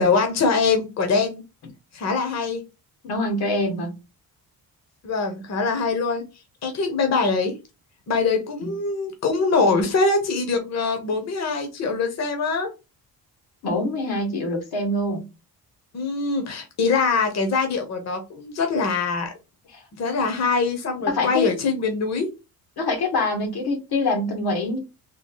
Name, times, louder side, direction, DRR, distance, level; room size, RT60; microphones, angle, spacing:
voice 1, 0.0-1.4 1.9-2.6 5.0-6.2 6.6-7.5 8.1-12.7 15.9-19.3 19.9-22.3, left 4 dB, 45° left, 0.9 m, -23 dB
voice 2, 3.0-3.9 8.6-8.7 13.6-15.3 21.1-21.5 22.8-24.8, left 2 dB, 85° left, 1.6 m, -25 dB
3.8 x 2.3 x 3.8 m
cardioid pair, 130°, 37 cm